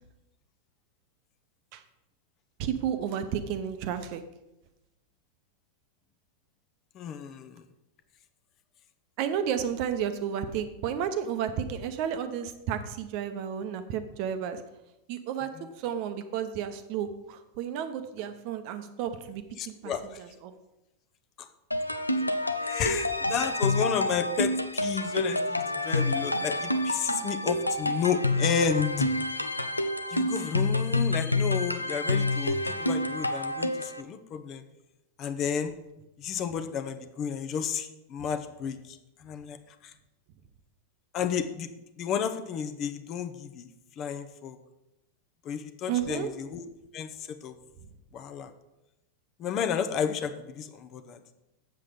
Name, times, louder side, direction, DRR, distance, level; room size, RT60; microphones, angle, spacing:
voice 1, 2.6-4.2 9.2-14.6 15.1-20.5 45.9-46.3, right 8 dB, 45° right, 10 dB, 0.8 m, -32 dB
voice 2, 6.9-7.6 19.6-20.2 21.4-21.5 22.6-29.1 30.1-34.6 35.2-35.7 36.2-39.6 39.8-39.9 41.1-41.7 42.0-43.7 44.0-44.6 45.4-46.7 46.9-47.6 48.1-48.5 49.4-51.2, left 7 dB, 35° left, 10 dB, 0.8 m, -32 dB
sound 1, 21.7-34.0, left 1 dB, 85° left, 0.5 m, -28 dB
7.5 x 7.4 x 5.1 m, 0.94 s
figure-of-eight pair, 90°, 0 cm